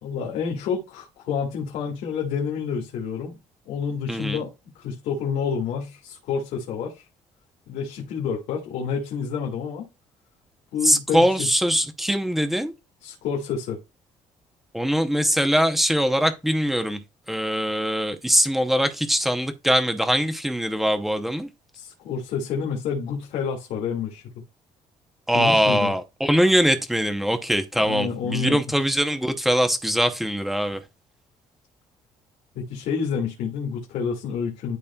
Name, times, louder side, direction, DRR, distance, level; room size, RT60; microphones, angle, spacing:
voice 1, 0.0-3.4 3.7-7.0 7.7-9.9 10.7-11.5 13.0-13.8 21.7-24.2 25.3-25.9 27.7-28.6 32.6-34.8, left 6 dB, 80° left, 2.1 m, -29 dB
voice 2, 4.1-4.4 10.8-12.7 14.7-17.0 17.3-21.5 25.3-30.8, equal, ahead, 0.7 m, -22 dB
12.0 x 4.2 x 2.3 m
cardioid pair, 180°, 13 cm